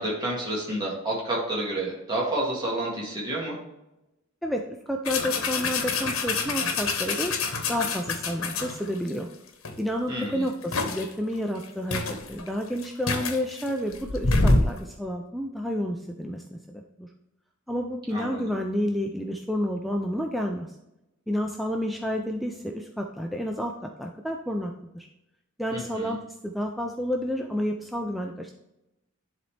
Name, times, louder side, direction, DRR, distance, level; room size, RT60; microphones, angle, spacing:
voice 1, 0.0-3.6 10.1-10.5 18.1-18.4 25.7-26.1, right 1 dB, 20° right, -5 dB, 1.7 m, -29 dB
voice 2, 4.9-7.3 7.7-9.3 9.8-12.0 12.3-17.1 17.7-20.7 21.3-23.7 24.0-25.1 25.6-28.5, equal, ahead, 1 dB, 0.4 m, -30 dB
sound 1, 5.0-9.1 9.6-9.8 10.2-11.1 11.6-11.7 11.9-14.8, left 3 dB, 75° left, 1.0 m, -27 dB
10.5 x 4.0 x 3.3 m, 0.91 s
head